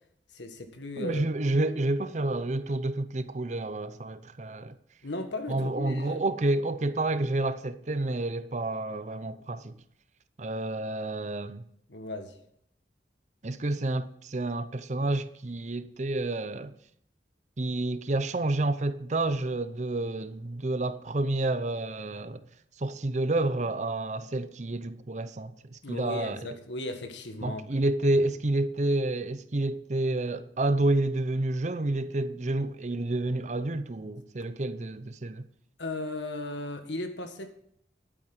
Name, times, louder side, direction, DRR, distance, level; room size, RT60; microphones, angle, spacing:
voice 1, 0.3-1.3 5.0-6.2 11.9-12.3 25.8-27.8 35.8-37.5, left 2 dB, 85° left, 1.7 m, -36 dB
voice 2, 1.0-4.8 5.5-9.7 10.4-11.6 13.4-16.7 17.6-22.4 22.8-26.5 27.4-35.5, right 2 dB, 40° right, 0.6 m, -29 dB
11.5 x 8.8 x 6.0 m
head